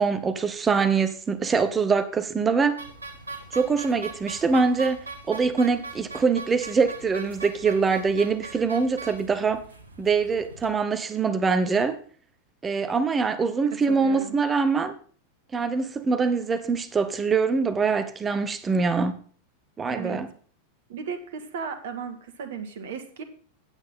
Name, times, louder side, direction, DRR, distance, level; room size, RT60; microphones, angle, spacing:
voice 1, 0.0-2.8 3.5-9.6 10.0-12.0 12.6-14.9 15.5-19.2 19.8-20.3, right 5 dB, 20° right, 1.0 m, -24 dB
sound 1, 2.8-10.7, right 3 dB, 80° right, 1.3 m, -41 dB
voice 2, 13.9-14.4 19.9-20.2 20.9-23.2, right 6 dB, 55° right, 1.5 m, -35 dB
9.0 x 8.0 x 5.4 m
figure-of-eight pair, 90°, 0 cm